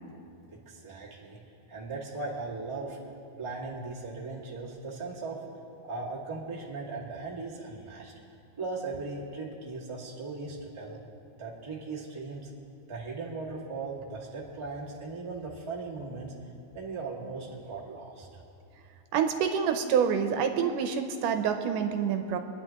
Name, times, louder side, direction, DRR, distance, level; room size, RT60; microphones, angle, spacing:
voice 1, 0.5-1.4 1.7-3.0 3.4-5.4 5.8-8.1 8.6-11.0 11.4-12.5 12.9-16.3 16.7-18.4, right 3 dB, 15° right, -5 dB, 1.2 m, -38 dB
voice 2, 19.1-22.4, right 7 dB, 80° right, 6 dB, 2.2 m, -27 dB
26.5 x 10.5 x 2.9 m, 2.6 s
omnidirectional pair, 3.8 m